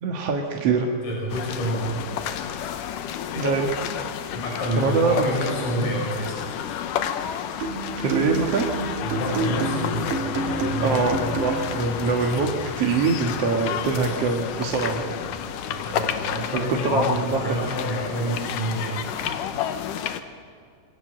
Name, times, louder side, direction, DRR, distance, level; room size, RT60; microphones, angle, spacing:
voice 1, 0.0-0.9 3.4-3.7 4.8-5.4 5.8-5.9 8.0-8.6 10.8-12.5 12.8-15.1 16.5-17.4, right 4 dB, 55° right, 1 dB, 2.4 m, -23 dB
voice 2, 0.8-2.1 4.3-6.4 9.0-11.8 15.6-19.9, right 1 dB, 45° left, -2 dB, 6.6 m, -29 dB
sound 1, 1.3-20.2, left 9 dB, 90° left, 2.7 m, -30 dB
sound 2, 7.6-11.9, right 3 dB, 90° right, 3.9 m, -29 dB
27.0 x 22.0 x 7.9 m, 2.2 s
omnidirectional pair, 3.7 m